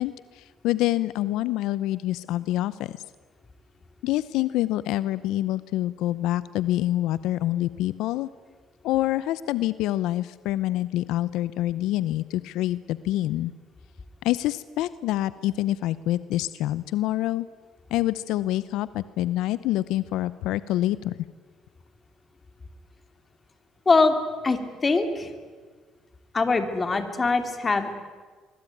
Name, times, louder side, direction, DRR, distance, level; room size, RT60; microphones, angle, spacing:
voice 1, 0.0-3.0 4.0-8.3 8.8-13.5 14.2-17.5 17.9-21.1, left 15 dB, 85° left, 16 dB, 0.7 m, -26 dB
voice 2, 24.4-25.3 26.3-27.9, left 3 dB, 25° left, 8 dB, 3.3 m, -22 dB
24.0 x 23.5 x 9.3 m, 1.5 s
cardioid pair, 105°, 0 cm